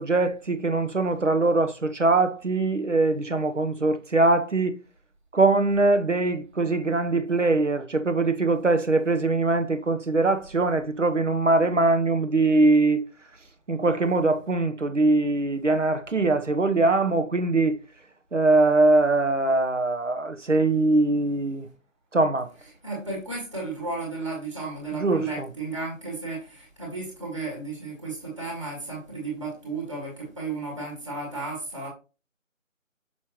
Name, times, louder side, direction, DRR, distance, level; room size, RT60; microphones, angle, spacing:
voice 1, 0.0-4.8 5.3-13.0 13.7-17.8 18.3-21.7 22.1-22.5 25.0-25.5, right 2 dB, 60° right, 1.1 m, -22 dB
voice 2, 22.8-31.9, right 3 dB, 20° right, 1.7 m, -33 dB
6.3 x 5.5 x 3.0 m
figure-of-eight pair, 165°, 40 cm